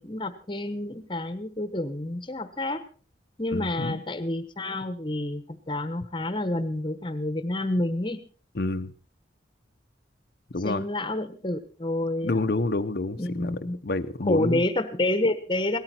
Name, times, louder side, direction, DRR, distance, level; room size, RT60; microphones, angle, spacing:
voice 1, 0.0-2.8 3.4-8.2 10.6-12.4 13.2-13.8 14.2-15.8, left 1 dB, 25° left, 10 dB, 1.1 m, -29 dB
voice 2, 3.5-4.0 8.6-8.9 10.5-10.9 12.2-14.6, left 2 dB, 55° left, 9 dB, 0.7 m, -28 dB
18.0 x 13.5 x 4.3 m, 0.39 s
head